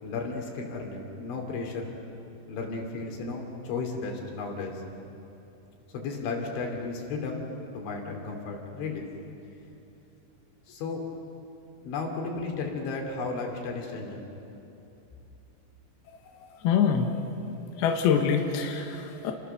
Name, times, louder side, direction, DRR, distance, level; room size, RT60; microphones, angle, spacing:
voice 1, 0.0-2.0 2.5-4.8 5.9-7.4 7.7-9.1 10.7-11.0 11.8-14.3, left 4 dB, 85° left, 1 dB, 5.3 m, -34 dB
voice 2, 16.6-17.2 17.8-19.3, left 7 dB, 70° left, 3 dB, 3.1 m, -25 dB
30.0 x 22.0 x 6.8 m, 2.9 s
omnidirectional pair, 5.2 m